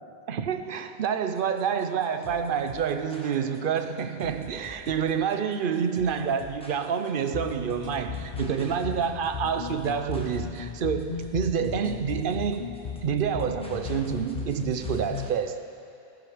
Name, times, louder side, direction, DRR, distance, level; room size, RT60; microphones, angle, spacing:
voice 1, 0.3-12.7 13.0-15.7, right 7 dB, 55° right, 9 dB, 0.8 m, -28 dB
sound 1, 1.4-15.4, equal, 5° left, 1.3 m, -48 dB
sound 2, 7.3-15.4, left 7 dB, 45° left, 0.7 m, -36 dB
16.5 x 11.5 x 5.0 m, 2.7 s
omnidirectional pair, 1.1 m